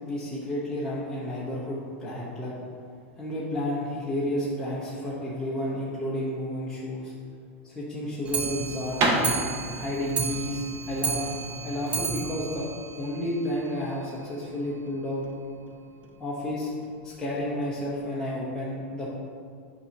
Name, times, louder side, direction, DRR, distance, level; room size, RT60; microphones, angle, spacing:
voice 1, 0.0-2.5 3.2-7.1 7.6-9.4 9.7-11.3 11.6-12.7 12.9-15.2 16.2-16.7 17.0-19.1, left 1 dB, 10° left, -8 dB, 0.9 m, -31 dB
sound 1, 7.2-12.7, right 2 dB, 35° right, 0.9 m, -30 dB
Clock, 8.2-13.7 14.1-14.2 14.4-14.5 14.9-15.0 15.2-15.3 16.0-16.1 16.8-16.9 17.6-17.7, right 5 dB, 20° right, 0.4 m, -33 dB
6.7 x 2.9 x 5.4 m, 2.2 s
supercardioid pair, 145°, 7 cm